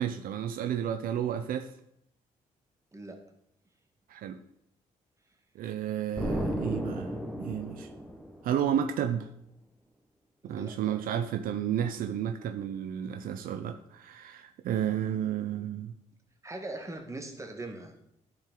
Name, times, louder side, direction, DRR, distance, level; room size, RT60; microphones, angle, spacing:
voice 1, 0.0-1.7 4.1-4.4 5.6-7.9 8.4-9.3 10.4-16.0, right 9 dB, 75° right, 8 dB, 0.5 m, -32 dB
voice 2, 2.9-3.2 10.4-11.0 16.4-17.9, right 2 dB, 20° right, 4 dB, 1.5 m, -41 dB
Explosion, 6.2-8.8, equal, 5° left, 1.2 m, -34 dB
10.5 x 4.6 x 3.8 m, 0.74 s
cardioid pair, 70°, 15 cm